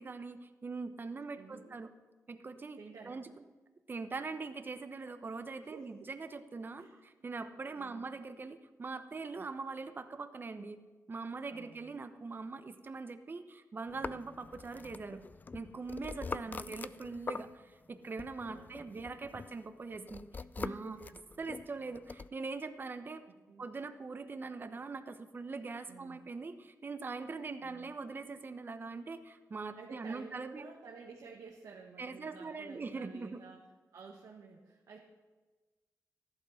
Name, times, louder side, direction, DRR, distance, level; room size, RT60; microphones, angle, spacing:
voice 1, 0.0-1.9 2.3-2.8 3.0-3.3 3.9-6.9 7.2-10.8 11.1-15.2 15.5-21.0 21.4-23.2 23.6-30.6 32.0-33.4, right 4 dB, 35° right, 9 dB, 1.0 m, -42 dB
voice 2, 1.3-1.8 2.8-3.2 5.6-6.1 6.8-7.0 7.7-8.1 11.5-12.0 16.4-16.8 18.5-19.0 20.6-21.2 21.6-21.7 23.3-23.7 25.9-26.2 27.6-27.9 29.7-33.6 33.9-35.0, right 5 dB, 75° right, -1 dB, 1.7 m, -53 dB
sound 1, 13.9-17.9 18.2-22.3, left 4 dB, 30° left, 0.3 m, -44 dB
14.5 x 12.0 x 5.8 m, 1.2 s
wide cardioid pair, 115°, 6 cm